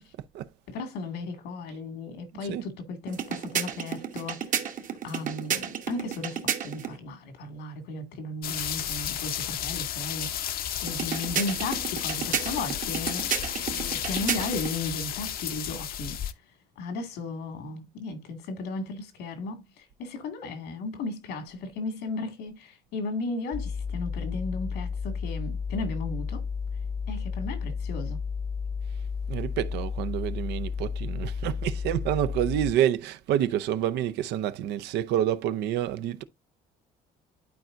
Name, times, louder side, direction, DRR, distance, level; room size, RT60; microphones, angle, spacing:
voice 1, 0.7-4.5 5.0-13.3 13.6-16.2 16.8-26.4 27.1-28.2, left 3 dB, 85° left, 2.2 m, -35 dB
sound 1, 3.1-7.0 10.9-14.8, right 8 dB, 50° right, 1.2 m, -32 dB
sound 2, 8.4-16.3, left 10 dB, 60° left, 0.7 m, -32 dB
sound 3, 23.5-32.7, left 5 dB, 20° left, 0.3 m, -32 dB
voice 2, 29.3-36.2, right 11 dB, 80° right, 0.7 m, -28 dB
12.0 x 4.5 x 2.5 m
cardioid pair, 110°, 17 cm